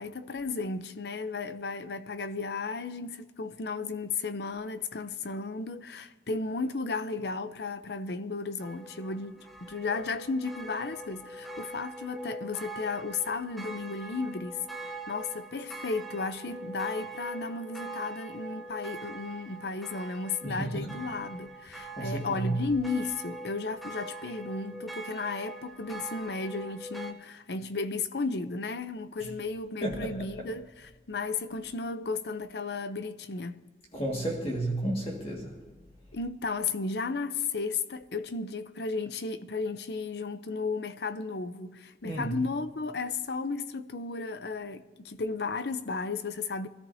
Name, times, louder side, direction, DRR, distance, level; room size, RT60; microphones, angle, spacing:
voice 1, 0.0-33.7 36.1-46.7, left 4 dB, 70° left, 0.7 m, -34 dB
sound 1, 8.6-27.1, right 2 dB, ahead, 0.7 m, -43 dB
voice 2, 20.4-21.0 22.0-22.6 29.2-29.3 29.8-30.5 33.9-35.6 42.0-42.4, right 1 dB, 35° left, 2.0 m, -32 dB
23.0 x 14.0 x 2.8 m
head